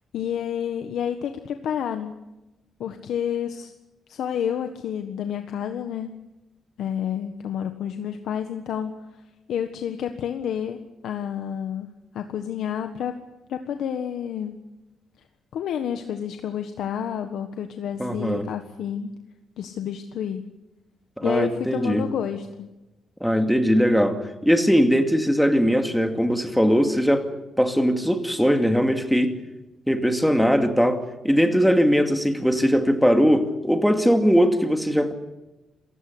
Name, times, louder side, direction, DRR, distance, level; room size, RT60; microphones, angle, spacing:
voice 1, 0.1-2.1 2.8-3.7 4.1-6.1 6.8-8.9 9.5-13.1 13.5-14.6 15.5-19.1 19.6-20.4 21.2-22.7, left 9 dB, 85° left, 7 dB, 1.5 m, -29 dB
voice 2, 18.0-18.4 21.2-22.0 23.2-27.2 27.6-29.4 29.9-35.1, equal, ahead, 6 dB, 2.3 m, -20 dB
27.5 x 16.5 x 8.1 m, 1.0 s
cardioid pair, 130°, 0 cm